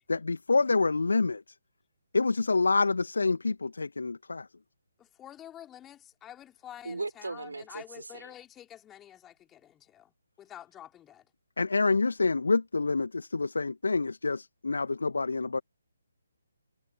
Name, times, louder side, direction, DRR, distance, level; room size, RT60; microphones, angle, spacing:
voice 1, 0.1-1.4 2.1-4.5 11.6-15.6, left 3 dB, 70° left, 1.9 m, -27 dB
voice 2, 5.0-10.1 10.4-11.3, left 11 dB, 15° left, 3.9 m, -49 dB
voice 3, 6.8-8.3, right 3 dB, 75° right, 4.0 m, -38 dB
figure-of-eight pair, 140°, 0 cm